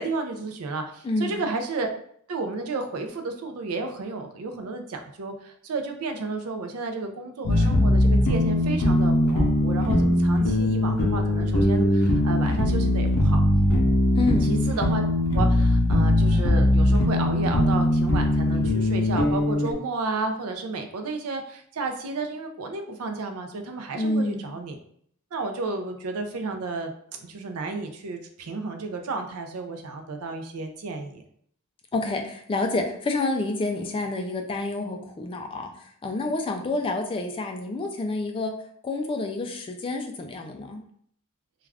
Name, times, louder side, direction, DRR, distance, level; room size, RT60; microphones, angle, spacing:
voice 1, 0.0-1.9 2.3-13.4 14.4-15.0 15.3-24.8 25.3-31.2, right 3 dB, 75° right, 5 dB, 0.4 m, -32 dB
voice 2, 1.0-1.4 14.2-14.5 24.0-24.4 31.9-38.5 38.8-40.8, left 2 dB, 25° left, 3 dB, 0.3 m, -28 dB
sound 1, 7.4-19.7, left 1 dB, 90° left, 0.6 m, -21 dB
2.3 x 2.3 x 3.3 m, 0.64 s
head